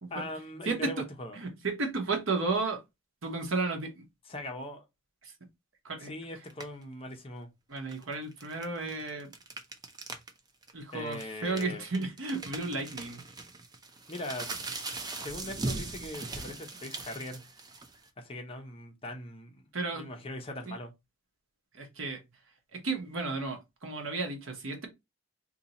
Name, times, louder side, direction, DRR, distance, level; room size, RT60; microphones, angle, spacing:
voice 1, 0.1-1.4 4.3-4.8 6.0-7.5 10.9-11.9 14.1-14.5 14.7-17.4 18.2-19.6 19.9-20.9, left 1 dB, 30° left, 0.8 m, -40 dB
voice 2, 0.7-1.0 1.4-2.8 3.2-4.0 5.2-5.3 5.8-6.1 7.7-9.3 10.7-13.2 19.7-20.1 20.7-20.8 21.7-22.2 22.7-24.9, right 3 dB, 85° right, 1.1 m, -33 dB
sound 1, 6.5-6.8 7.8-10.3 10.6-10.7 11.1-18.1, right 3 dB, 20° right, 0.5 m, -40 dB
2.8 x 2.8 x 4.0 m
head